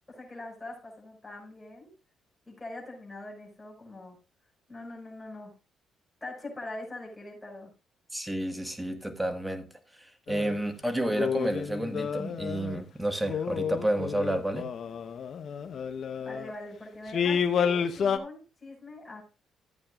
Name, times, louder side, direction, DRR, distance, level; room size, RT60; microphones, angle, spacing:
voice 1, 0.1-1.9 2.5-4.2 4.7-5.6 6.2-7.7 16.2-19.2, left 2 dB, 15° left, -2 dB, 5.8 m, -42 dB
voice 2, 8.1-9.7 10.0-14.7, right 1 dB, 10° right, 7 dB, 1.7 m, -30 dB
sound 1, 10.3-10.6 11.1-12.8 13.2-16.5 17.1-18.2, left 7 dB, 60° left, 1.0 m, -30 dB
14.5 x 8.7 x 2.5 m, 0.29 s
cardioid pair, 90°, 0 cm